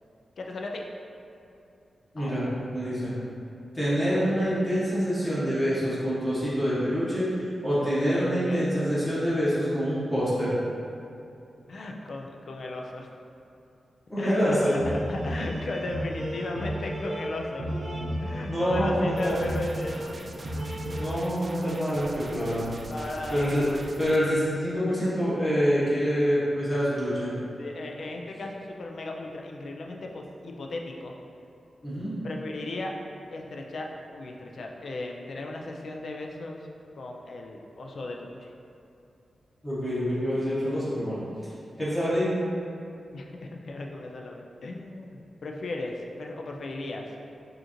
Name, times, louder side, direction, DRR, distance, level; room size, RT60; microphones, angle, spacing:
voice 1, 0.4-0.8 2.2-2.4 8.1-8.7 11.7-13.1 14.2-14.4 15.1-17.7 18.2-20.0 22.9-23.8 27.6-31.1 32.2-32.9 33.3-36.6 37.0-38.5 43.1-47.1, left 2 dB, 60° left, 1 dB, 0.4 m, -36 dB
voice 2, 2.1-3.1 3.7-10.5 14.1-14.7 18.5-19.4 21.0-22.7 23.3-23.7 24.0-27.3 31.8-32.1 39.6-41.2 41.8-42.3, equal, 10° left, -11 dB, 1.1 m, -26 dB
sound 1, 14.4-21.1, equal, 80° right, 0.7 m, -33 dB
sound 2, 19.2-24.2, right 1 dB, 35° right, 0.3 m, -43 dB
4.8 x 2.5 x 3.0 m, 2.7 s
wide cardioid pair, 140°, 0 cm